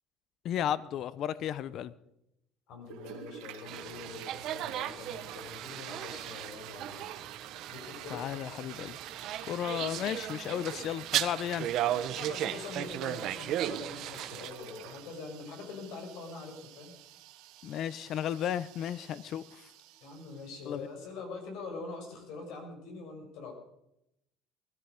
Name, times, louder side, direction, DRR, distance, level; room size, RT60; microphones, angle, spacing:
voice 1, 0.4-1.9 8.1-9.0 9.4-11.7 17.6-19.7 20.7-20.9, left 10 dB, 55° left, 18 dB, 0.7 m, -34 dB
voice 2, 2.7-7.1 7.7-8.2 12.1-16.9 20.0-23.5, left 3 dB, 70° left, 3 dB, 5.9 m, -44 dB
Toilet flush, 2.8-20.8, right 11 dB, 80° right, 2.1 m, -49 dB
sound 1, 3.7-14.5, right 12 dB, 60° right, 1.0 m, -36 dB
20.5 x 13.5 x 5.2 m, 0.83 s
cardioid pair, 120°, 0 cm